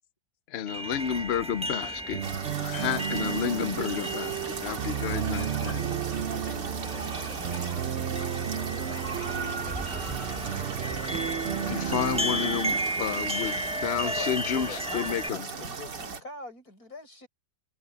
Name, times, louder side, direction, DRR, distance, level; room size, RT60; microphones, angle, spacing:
voice 1, 0.5-2.2 2.6-6.0 6.3-6.7 11.6-15.5, left 9 dB, 70° left, 0.6 m, -31 dB
sound 1, 0.7-15.3, right 1 dB, 5° right, 0.5 m, -35 dB
sound 2, 2.1-13.8, right 10 dB, 60° right, 0.7 m, -33 dB
sound 3, 2.2-16.2, right 5 dB, 75° right, 2.6 m, -38 dB
voice 2, 6.8-7.9 8.2-10.1, left 4 dB, 25° left, 1.8 m, -48 dB
voice 3, 13.7-17.3, left 3 dB, 55° left, 6.0 m, -42 dB
omnidirectional pair, 1.9 m